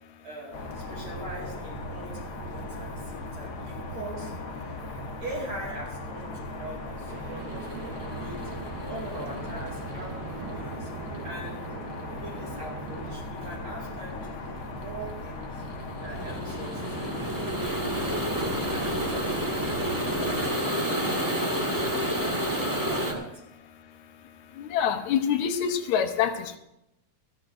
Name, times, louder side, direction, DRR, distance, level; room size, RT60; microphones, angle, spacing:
voice 1, 0.2-4.3 5.2-8.4 8.9-10.9 11.2-11.7 12.2-15.6 16.0-18.2 18.7-19.7 20.1-20.5 20.8-23.3, right 1 dB, 60° right, -3 dB, 3.9 m, -42 dB
sound 1, 0.5-20.4, left 2 dB, 50° left, 1.2 m, -38 dB
sound 2, 7.1-13.2, right 5 dB, 75° right, 0.9 m, -42 dB
sound 3, 7.4-23.1, equal, 10° right, 1.0 m, -31 dB
voice 2, 24.6-26.6, left 8 dB, 75° left, 7 dB, 2.2 m, -26 dB
19.5 x 14.0 x 2.6 m, 0.83 s
omnidirectional pair, 3.4 m